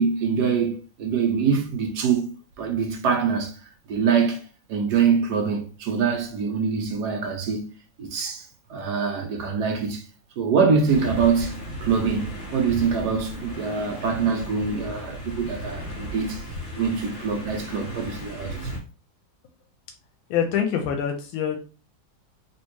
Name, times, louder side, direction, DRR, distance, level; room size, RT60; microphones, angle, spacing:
voice 1, 0.0-3.6 3.9-7.7 8.0-10.1 10.4-16.4 16.7-18.7, right 6 dB, 70° right, 1.0 m, -24 dB
sound 1, 10.8-18.8, equal, 45° left, 1.7 m, -35 dB
voice 2, 20.3-21.6, left 8 dB, 90° left, 1.4 m, -25 dB
3.4 x 2.8 x 3.0 m
omnidirectional pair, 2.2 m